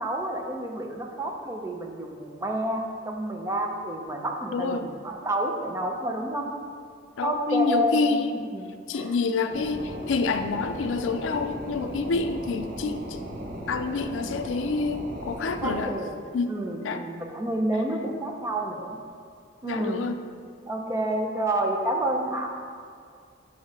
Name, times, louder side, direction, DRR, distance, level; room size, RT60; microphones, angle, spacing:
voice 1, 0.0-6.5 7.2-9.2 15.6-16.1 16.5-19.0 19.6-20.0 20.7-22.5, right 1 dB, 15° right, 2 dB, 0.6 m, -29 dB
voice 2, 4.5-4.9 7.2-8.3 8.9-13.2 13.7-16.0 16.3-16.5 16.8-17.1 19.6-20.2, left 4 dB, 90° left, 9 dB, 0.4 m, -27 dB
sound 1, 9.5-15.8, equal, 50° right, 0.8 m, -37 dB
6.1 x 4.6 x 4.7 m, 2.2 s
head